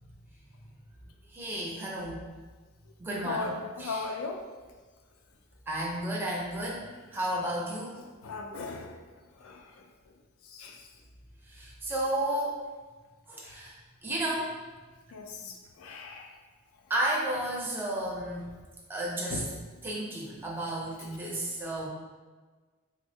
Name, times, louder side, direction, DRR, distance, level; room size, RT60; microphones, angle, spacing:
voice 1, 1.3-2.2 3.0-3.5 3.8-4.0 5.7-8.0 11.4-12.6 13.3-13.7 14.0-14.5 16.9-18.5 18.9-19.4 19.8-21.9, right 1 dB, 10° right, -4 dB, 0.5 m, -32 dB
voice 2, 3.3-4.4 8.2-9.0 9.4-9.8 10.4-10.9 13.5-13.6 15.1-16.3 19.3-19.5, left 4 dB, 70° left, 2 dB, 0.4 m, -37 dB
3.4 x 2.0 x 2.6 m, 1.4 s
head